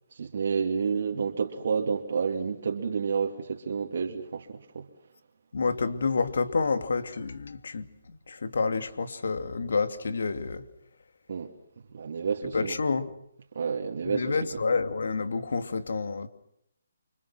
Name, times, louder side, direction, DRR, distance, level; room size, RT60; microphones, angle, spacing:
voice 1, 0.1-4.9 11.3-11.5 11.9-12.8 13.5-14.4, right 6 dB, 60° right, 2.6 m, -30 dB
voice 2, 5.5-10.6 12.5-13.1 14.0-16.3, left 4 dB, 70° left, 2.6 m, -29 dB
29.5 x 26.0 x 6.0 m
hypercardioid pair, 155°, 0 cm